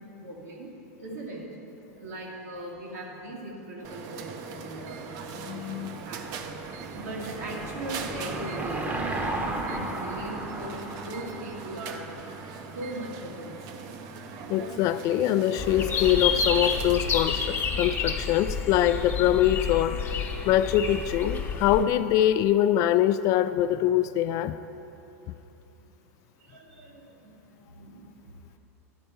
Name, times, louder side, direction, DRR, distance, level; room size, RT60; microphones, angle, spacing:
voice 1, 0.2-0.7 1.0-1.4 2.0-5.7 6.0-6.3 6.9-12.1 12.7-14.4 26.4-28.1, right 1 dB, 85° right, -2 dB, 1.9 m, -40 dB
sound 1, 3.8-17.1, right 5 dB, 50° right, 0.7 m, -40 dB
voice 2, 5.4-6.0 14.5-24.5, left 11 dB, 45° left, 12 dB, 0.3 m, -24 dB
Car passing by / Engine, 5.8-12.6, right 2 dB, 20° right, 0.9 m, -35 dB
sound 2, 15.6-21.8, left 6 dB, 25° left, 0.9 m, -29 dB
10.5 x 4.3 x 6.8 m, 3.0 s
hypercardioid pair, 115°, 8 cm